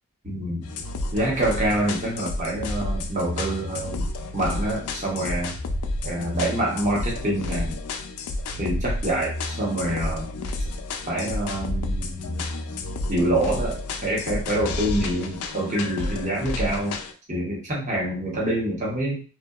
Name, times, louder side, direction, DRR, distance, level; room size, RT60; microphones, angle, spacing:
voice 1, 0.2-0.7 1.1-4.1 4.3-5.5 6.0-7.8 8.6-10.3 11.1-12.4 13.1-17.0 17.3-19.2, right 1 dB, 35° right, -4 dB, 0.9 m, -26 dB
sound 1, 0.6-17.1, left 2 dB, 85° left, 0.4 m, -31 dB
2.7 x 2.1 x 2.3 m, 0.36 s
head